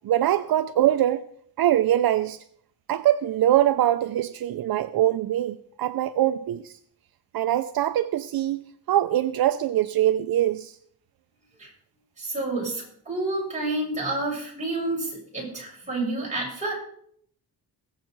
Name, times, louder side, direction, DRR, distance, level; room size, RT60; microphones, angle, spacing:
voice 1, 0.0-1.2 1.6-2.4 2.9-6.7 7.3-10.7, right 12 dB, 65° right, 0.6 m, -23 dB
voice 2, 12.2-16.7, right 2 dB, 20° right, 7.2 m, -29 dB
21.0 x 7.8 x 4.6 m
wide cardioid pair, 150°, 39 cm